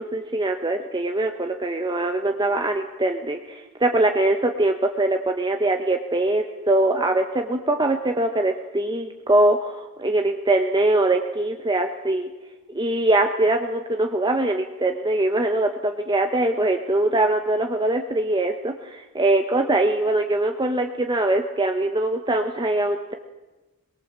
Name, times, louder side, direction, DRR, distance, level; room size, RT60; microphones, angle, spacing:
voice 1, 0.0-12.3 12.7-23.1, right 2 dB, 20° right, 4 dB, 1.1 m, -22 dB
22.5 x 21.5 x 7.4 m, 1.1 s
head